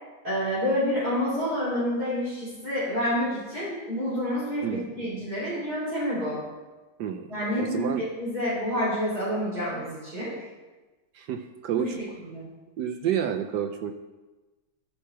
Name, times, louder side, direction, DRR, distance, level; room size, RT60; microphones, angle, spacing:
voice 1, 0.2-6.4 7.3-7.9 8.2-10.4 11.7-12.5, equal, 50° right, -12 dB, 4.3 m, -28 dB
voice 2, 7.6-8.0 11.1-12.0 12.8-13.9, right 9 dB, 70° right, 7 dB, 1.0 m, -29 dB
13.5 x 5.7 x 4.7 m, 1.2 s
omnidirectional pair, 2.2 m